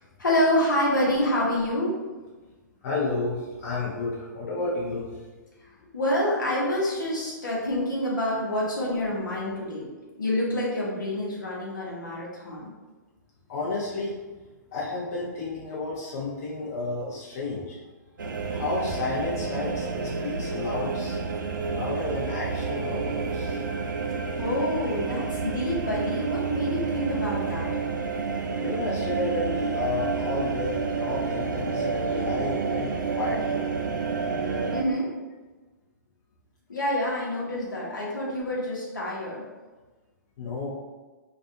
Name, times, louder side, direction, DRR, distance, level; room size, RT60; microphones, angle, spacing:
voice 1, 0.0-1.9 5.6-5.7 5.9-9.9 10.2-12.7 24.4-27.7 34.7-35.1 36.7-39.4, left 1 dB, 85° left, -5 dB, 0.9 m, -27 dB
voice 2, 2.8-5.2 5.8-5.9 13.5-14.2 14.7-17.8 18.5-21.2 21.6-23.6 28.5-32.9 33.2-33.6 40.4-40.7, left 2 dB, 55° left, -5 dB, 0.6 m, -31 dB
sound 1, 18.2-34.8, right 5 dB, 80° right, 0.4 m, -29 dB
2.5 x 2.3 x 2.6 m, 1.3 s
figure-of-eight pair, 120°, 10 cm